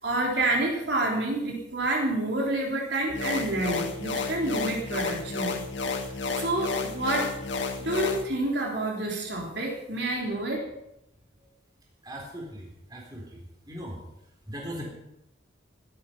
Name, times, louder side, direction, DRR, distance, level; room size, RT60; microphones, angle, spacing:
voice 1, 0.0-5.5 6.4-7.3 7.8-10.7, right 2 dB, 60° right, -2 dB, 4.0 m, -28 dB
sound 1, 3.1-8.2, left 4 dB, 70° left, 1.8 m, -31 dB
voice 2, 12.0-13.2 13.7-13.9 14.5-14.9, equal, 20° right, -1 dB, 3.9 m, -38 dB
16.0 x 12.0 x 5.8 m, 0.85 s
head